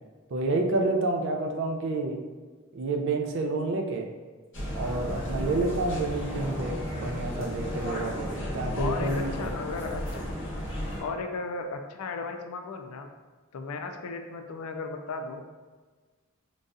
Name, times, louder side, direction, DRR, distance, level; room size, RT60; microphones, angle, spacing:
voice 1, 0.3-2.2 2.7-4.1 4.7-9.5, right 2 dB, 55° right, 3 dB, 0.4 m, -29 dB
sound 1, 4.5-11.0, equal, 55° left, 1.1 m, -33 dB
voice 2, 8.8-10.0 11.0-13.1 13.5-15.4, left 4 dB, 85° left, 5 dB, 0.4 m, -35 dB
3.9 x 2.3 x 2.5 m, 1.4 s
head